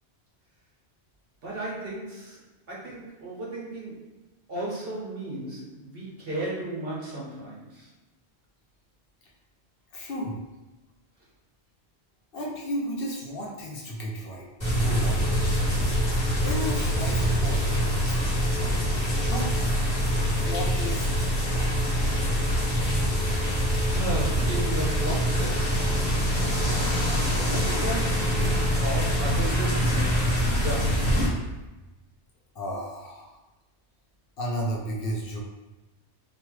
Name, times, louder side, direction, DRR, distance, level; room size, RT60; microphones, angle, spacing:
voice 1, 1.4-2.4 2.7-4.0 4.5-7.9 23.5-25.9 27.3-31.1, right 1 dB, 60° right, -5 dB, 1.1 m, -35 dB
voice 2, 9.9-10.4 12.3-15.2 16.4-17.6 18.1-18.2 19.2-19.5 20.4-21.1 23.9-24.0 32.5-33.4 34.4-35.4, equal, 60° left, -3 dB, 0.8 m, -33 dB
sound 1, 14.6-31.3, equal, 30° left, 1.1 m, -25 dB
sound 2, 15.7-23.7 24.4-25.4 26.8-28.1 28.4-28.8, right 1 dB, 85° right, 0.9 m, -37 dB
3.0 x 2.3 x 3.1 m, 1.0 s
omnidirectional pair, 1.2 m